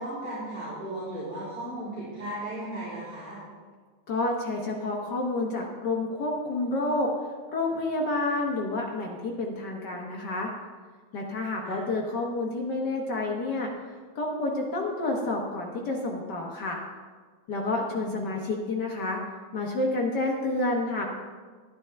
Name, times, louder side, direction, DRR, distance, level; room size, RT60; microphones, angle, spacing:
voice 1, 0.0-3.4 11.6-11.8 17.9-18.2, right 1 dB, 40° right, -12 dB, 3.9 m, -36 dB
voice 2, 4.1-7.1 7.5-10.5 11.1-13.7 14.1-16.8 17.5-19.2 19.5-21.1, left 2 dB, 55° left, -1 dB, 1.2 m, -29 dB
12.0 x 10.0 x 3.4 m, 1.5 s
omnidirectional pair, 3.3 m